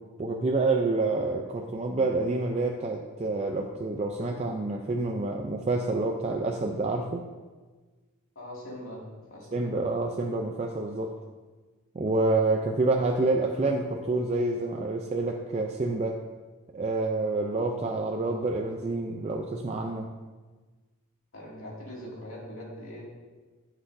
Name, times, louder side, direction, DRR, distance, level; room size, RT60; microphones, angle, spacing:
voice 1, 0.2-7.2 9.5-11.1 11.9-16.2 16.7-20.1, right 2 dB, 30° right, 2 dB, 0.4 m, -28 dB
voice 2, 8.4-9.0 9.3-9.6 21.3-23.0, left 1 dB, 70° left, -4 dB, 2.3 m, -41 dB
9.8 x 8.1 x 2.6 m, 1.3 s
head